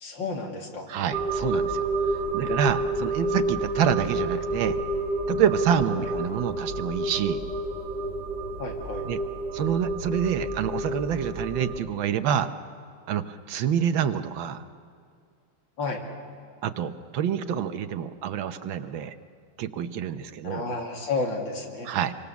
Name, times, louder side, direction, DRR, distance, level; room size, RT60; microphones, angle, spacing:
voice 1, 0.0-0.9 6.0-6.1 8.6-9.0 15.8-16.0 20.4-21.9, left 3 dB, 60° left, 2 dB, 3.0 m, -31 dB
voice 2, 0.9-1.8 2.3-4.8 5.3-7.4 9.0-9.2 9.5-12.5 13.1-14.6 16.6-19.1 19.6-20.6 21.8-22.1, right 9 dB, 70° right, 10 dB, 1.6 m, -27 dB
sound 1, 1.1-11.8, right 2 dB, 25° right, 3.2 m, -29 dB
25.5 x 24.5 x 7.1 m, 2.3 s
omnidirectional pair, 2.3 m